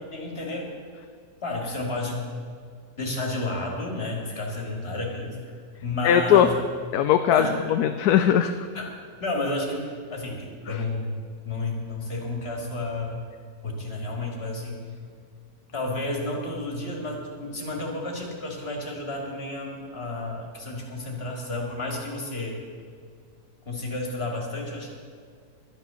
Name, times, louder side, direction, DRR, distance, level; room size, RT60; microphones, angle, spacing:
voice 1, 0.1-0.7 1.4-2.2 3.0-6.6 7.3-7.6 8.7-8.9 9.2-11.2 11.4-13.2 13.6-14.8 15.7-22.6 23.6-24.9, left 2 dB, 35° left, 0 dB, 2.5 m, -31 dB
voice 2, 6.0-6.5 6.9-8.5, left 9 dB, 75° left, 9 dB, 1.1 m, -19 dB
12.0 x 10.5 x 6.9 m, 2.2 s
omnidirectional pair, 1.8 m